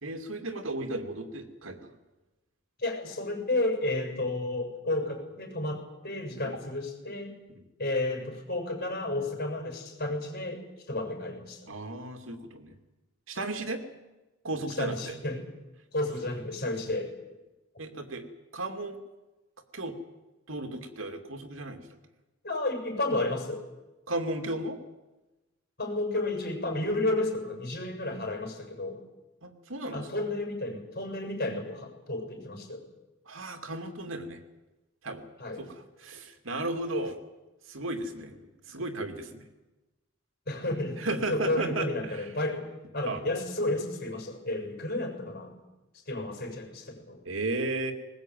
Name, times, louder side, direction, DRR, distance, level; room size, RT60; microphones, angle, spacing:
voice 1, 0.0-1.9 6.4-6.6 7.5-7.6 11.7-12.7 13.3-13.8 14.4-15.2 17.8-18.3 18.5-19.0 19.7-20.0 20.5-21.8 24.1-24.8 29.4-30.2 33.3-34.4 35.0-35.2 35.6-37.2 37.7-39.5 41.0-42.3 43.0-43.2 47.2-47.9, right 2 dB, 85° right, 5 dB, 2.7 m, -34 dB
voice 2, 2.8-7.3 7.8-11.7 14.7-15.4 15.9-17.1 22.4-23.6 25.8-29.0 29.9-32.8 35.4-35.6 40.5-41.0 41.3-42.7 42.9-45.5 46.1-47.2, left 2 dB, 50° left, 3 dB, 7.2 m, -32 dB
20.5 x 20.0 x 9.3 m, 1.1 s
head